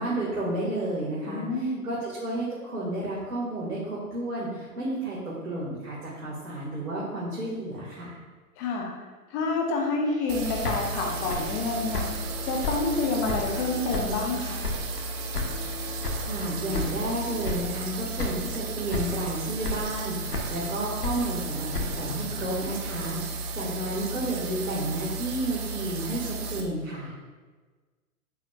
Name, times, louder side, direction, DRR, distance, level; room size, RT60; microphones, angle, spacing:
voice 1, 0.0-8.2 16.2-27.2, right 1 dB, 80° right, -6 dB, 2.1 m, -32 dB
voice 2, 1.3-1.9 8.6-8.9 9.3-12.1 12.4-14.6, left 3 dB, 10° left, 0 dB, 0.4 m, -28 dB
sound 1, 10.0-17.5, left 1 dB, 10° right, 1.0 m, -45 dB
sound 2, 10.3-26.6, right 3 dB, 25° right, 0.7 m, -34 dB
sound 3, 10.4-13.6 13.9-15.1 15.3-17.1 17.4-17.9 18.2-18.6 18.9-19.3 19.6-20.7 21.0-23.2, left 3 dB, 85° left, 1.5 m, -34 dB
7.8 x 6.9 x 2.5 m, 1.3 s
figure-of-eight pair, 115°, 45 cm